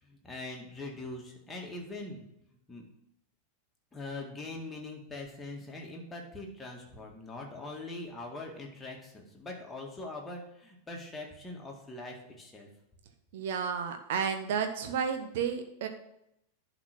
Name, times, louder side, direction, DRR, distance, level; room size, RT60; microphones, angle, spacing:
voice 1, 0.0-2.2 2.7-2.8 3.9-12.7, left 2 dB, 15° left, -1 dB, 2.0 m, -42 dB
voice 2, 13.3-15.9, right 7 dB, 55° right, 7 dB, 0.9 m, -32 dB
11.0 x 4.0 x 6.2 m, 0.80 s
figure-of-eight pair, 90°, 0 cm